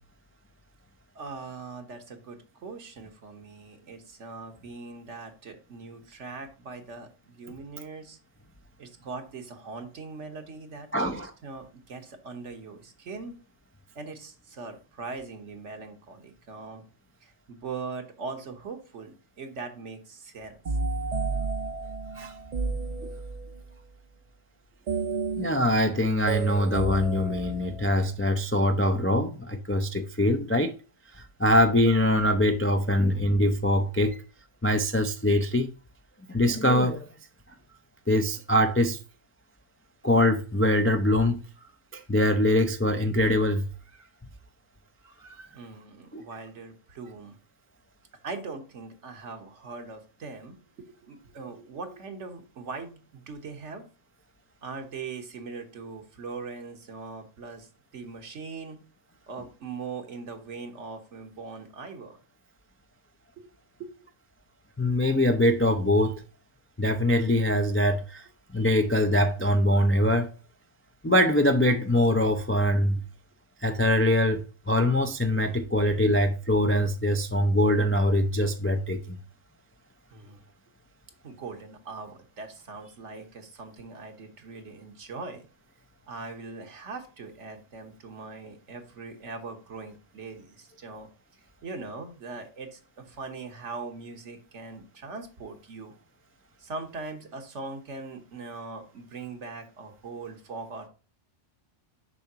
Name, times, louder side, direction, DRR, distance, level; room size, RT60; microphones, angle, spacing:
voice 1, 1.1-8.2 8.8-13.3 13.9-16.8 17.2-20.6 23.0-23.1 45.5-47.4 48.2-50.6 51.0-53.8 54.6-58.8 59.3-62.2 63.4-63.5 64.0-64.1 80.1-80.4 81.2-85.5 86.1-91.1 91.6-95.9 96.6-100.9, right 4 dB, 75° right, 1.5 m, -41 dB
voice 2, 10.9-11.3 22.2-22.3 25.4-30.7 31.4-34.2 34.6-35.7 36.3-37.1 38.1-39.0 40.0-41.4 42.1-43.7 46.1-46.2 64.8-66.2 66.8-68.2 68.5-70.3 71.0-73.0 73.6-79.0, left 1 dB, 20° left, 0.3 m, -23 dB
sound 1, 20.7-23.6 24.9-28.2, right 4 dB, 45° right, 0.7 m, -32 dB
7.0 x 5.7 x 2.9 m
omnidirectional pair, 1.2 m